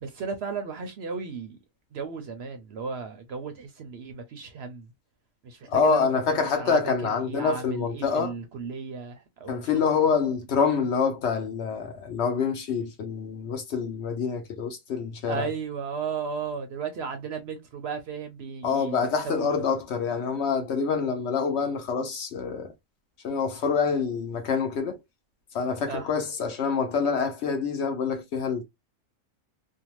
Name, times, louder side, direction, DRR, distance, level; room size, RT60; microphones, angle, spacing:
voice 1, 0.0-1.6 1.9-4.9 5.4-6.1 6.6-6.8 7.3-9.6 15.3-19.0 19.2-19.5 25.9-26.0, right 5 dB, 65° right, 0.7 m, -35 dB
voice 2, 5.7-8.3 9.5-15.5 18.6-22.7 23.2-25.0 25.5-28.6, left 5 dB, 65° left, 0.8 m, -26 dB
2.6 x 2.1 x 2.9 m
omnidirectional pair, 1.4 m